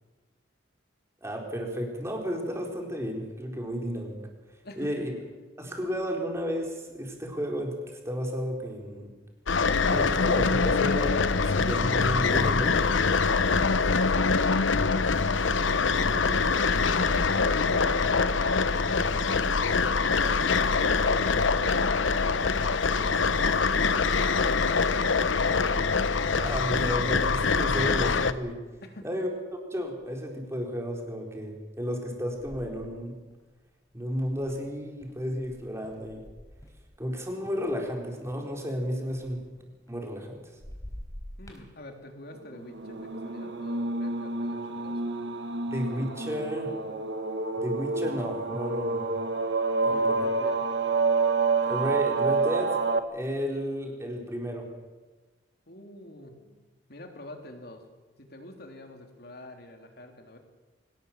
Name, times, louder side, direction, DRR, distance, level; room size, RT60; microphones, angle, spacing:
voice 1, 1.2-4.2 4.8-5.1 5.6-7.8 8.0-9.1 9.9-12.9 26.3-28.6 29.0-29.3 29.7-33.2 33.9-36.2 37.0-39.4 39.9-40.3 45.7-46.7 47.6-49.0 49.8-50.0 51.6-52.8 53.1-54.7, equal, 15° right, 1 dB, 4.3 m, -32 dB
voice 2, 4.6-5.0 13.8-16.3 28.8-29.2 41.4-45.0 49.9-50.7 55.7-56.6 56.9-57.8 58.2-60.4, left 1 dB, 55° left, 4 dB, 3.3 m, -46 dB
sound 1, 9.5-28.3, left 4 dB, 85° left, 1.0 m, -24 dB
sound 2, 29.8-30.2 30.8-31.0 31.9-37.2 37.5-40.3 40.6-41.7, equal, 15° left, 4.3 m, -47 dB
sound 3, 42.7-53.0, right 4 dB, 65° right, 1.7 m, -28 dB
24.5 x 18.5 x 7.5 m, 1.3 s
head